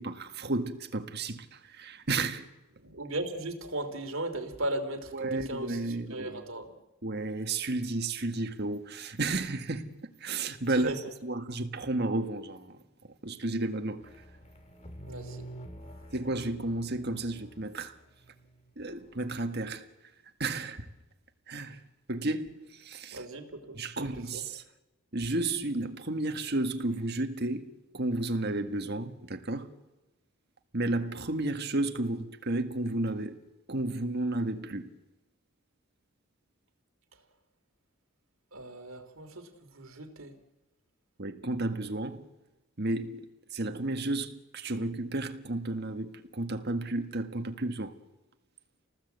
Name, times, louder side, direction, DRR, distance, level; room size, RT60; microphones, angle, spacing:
voice 1, 0.0-2.5 5.1-6.4 7.0-12.8 13.2-14.1 16.1-18.0 18.8-19.9 20.4-20.9 21.5-21.8 22.1-23.3 23.7-24.6 25.1-29.7 30.7-33.4 33.7-34.9 41.2-42.3 42.8-48.0, right 2 dB, 50° right, 1.7 m, -32 dB
voice 2, 2.8-6.7 10.7-11.0 15.1-15.5 23.1-23.8 24.2-24.4 38.5-40.4, right 1 dB, 70° right, 3.1 m, -37 dB
sound 1, 14.0-19.0, right 1 dB, 30° left, 2.2 m, -47 dB
29.0 x 19.0 x 8.1 m
head